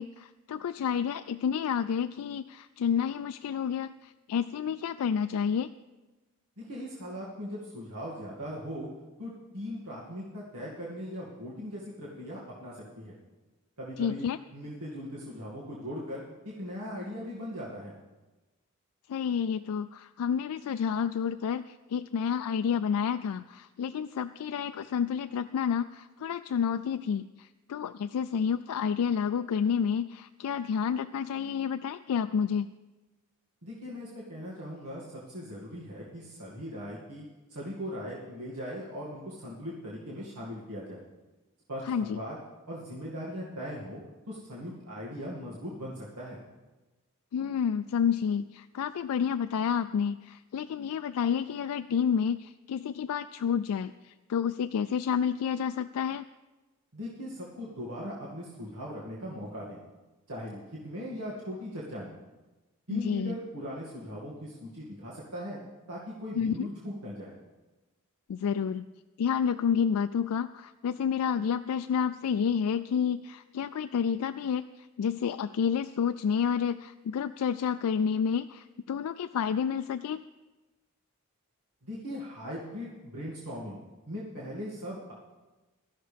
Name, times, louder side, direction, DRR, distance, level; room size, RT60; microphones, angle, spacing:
voice 1, 0.0-5.7 14.0-14.4 19.1-32.7 41.8-42.2 47.3-56.3 62.9-63.4 66.4-66.7 68.3-68.9 69.2-80.2, left 7 dB, 85° left, 9 dB, 0.3 m, -30 dB
voice 2, 6.6-8.9 9.2-13.2 13.8-14.3 14.5-16.2 16.6-17.9 33.6-37.2 37.5-41.0 41.7-42.4 42.7-44.0 44.3-46.4 56.9-59.8 60.3-62.1 62.9-65.6 65.9-67.3 81.8-83.8 84.1-85.1, equal, 85° right, -6 dB, 2.1 m, -39 dB
16.5 x 13.0 x 3.4 m, 1.1 s
head